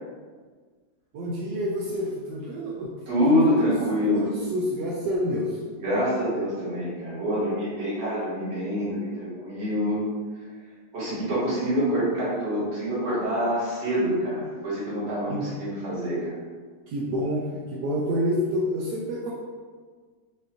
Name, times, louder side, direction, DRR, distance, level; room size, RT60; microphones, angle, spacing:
voice 1, 1.1-2.9 3.2-3.5 4.1-5.6 15.3-15.5 16.9-19.3, equal, 75° right, -4 dB, 1.1 m, -28 dB
voice 2, 3.1-4.3 5.8-10.0 10.9-16.3, equal, 40° right, -9 dB, 1.6 m, -26 dB
5.0 x 2.6 x 2.8 m, 1.5 s
omnidirectional pair, 1.9 m